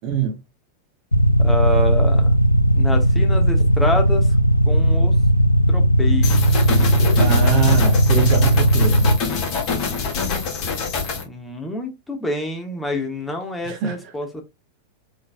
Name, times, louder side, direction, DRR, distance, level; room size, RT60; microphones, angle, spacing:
voice 1, 0.0-0.3 7.2-9.1 13.6-13.9, right 8 dB, 40° right, 1.3 m, -24 dB
sound 1, 1.1-9.2, equal, 85° left, 0.4 m, -16 dB
voice 2, 1.4-2.4 2.7-4.4 4.7-5.1 5.7-6.8 11.2-14.4, left 1 dB, 10° left, 1.4 m, -27 dB
sound 2, 6.2-11.2, left 5 dB, 40° left, 1.8 m, -25 dB
5.1 x 3.9 x 2.2 m
figure-of-eight pair, 90°, 0 cm